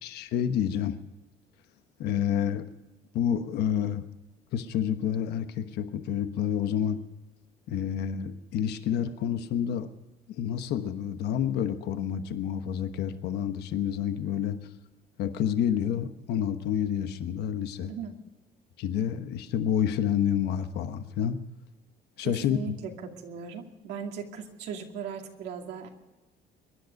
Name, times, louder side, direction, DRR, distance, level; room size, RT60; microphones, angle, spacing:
voice 1, 0.0-1.0 2.0-2.7 3.1-4.0 4.5-7.0 7.7-9.9 10.3-14.6 15.2-17.9 18.8-21.4 22.2-22.6, left 9 dB, 80° left, 9 dB, 1.2 m, -29 dB
voice 2, 17.8-18.2 22.2-25.9, right 6 dB, 85° right, 2 dB, 2.5 m, -38 dB
23.5 x 11.0 x 5.3 m, 1.1 s
cardioid pair, 110°, 17 cm